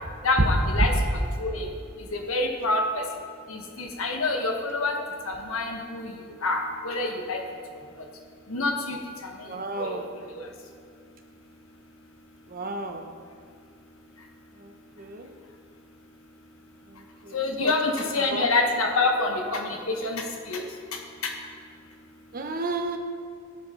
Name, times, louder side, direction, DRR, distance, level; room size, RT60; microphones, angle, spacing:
voice 1, 0.2-1.7 2.1-2.8 3.5-4.9 5.3-6.1 6.4-7.4 8.5-9.0 9.8-10.0 17.3-20.7, left 3 dB, 85° left, 2 dB, 1.4 m, -27 dB
voice 2, 9.5-10.1 12.5-13.1 14.6-14.7 15.0-15.3 17.2-17.7 18.3-18.5 22.3-23.0, right 3 dB, 45° right, 4 dB, 0.9 m, -33 dB
17.5 x 7.3 x 3.9 m, 2.2 s
head